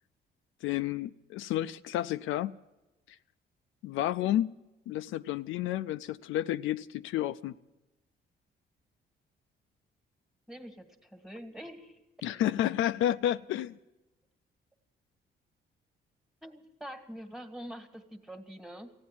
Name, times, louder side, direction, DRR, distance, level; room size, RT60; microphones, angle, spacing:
voice 1, 0.6-2.5 3.8-4.5 4.9-7.5 12.2-13.8, left 12 dB, 85° left, 0.4 m, -30 dB
voice 2, 10.5-12.0 12.3-12.4 16.4-18.9, equal, ahead, 1.6 m, -45 dB
15.0 x 9.5 x 9.7 m
cardioid pair, 90°, 20 cm